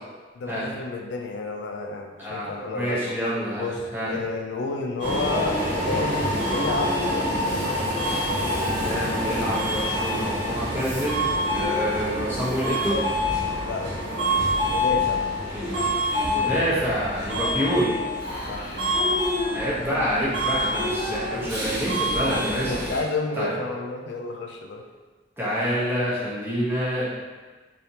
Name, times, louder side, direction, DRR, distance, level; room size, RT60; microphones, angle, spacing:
voice 1, 0.4-3.2 3.6-7.8 13.6-13.9 14.7-15.2 18.5-18.8 22.7-24.8, left 3 dB, 80° left, 3 dB, 0.4 m, -31 dB
voice 2, 2.2-3.7 3.9-4.1 8.8-13.0 15.5-17.9 19.5-22.7 23.4-23.5 25.4-27.1, equal, 15° right, -8 dB, 0.9 m, -27 dB
Subway metro underground, 5.0-23.0, left 1 dB, 90° right, 1.3 m, -26 dB
3.3 x 2.7 x 2.7 m, 1.3 s
head